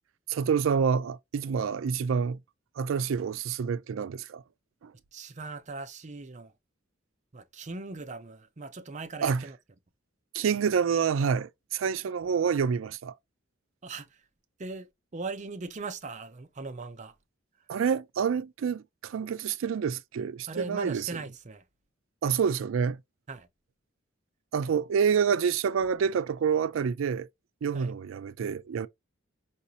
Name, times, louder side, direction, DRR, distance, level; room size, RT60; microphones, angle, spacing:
voice 1, 0.3-2.4 2.8-4.4 4.8-4.9 9.2-9.4 10.3-13.1 17.7-21.1 22.2-23.0 24.5-27.3 27.6-28.9, right 6 dB, 85° right, 0.4 m, -27 dB
voice 2, 5.1-6.5 7.3-9.6 13.8-14.1 14.6-14.9 15.1-17.1 20.5-21.6 23.3-23.5 27.7-27.9, right 3 dB, 40° right, 0.6 m, -39 dB
4.8 x 2.6 x 2.7 m
head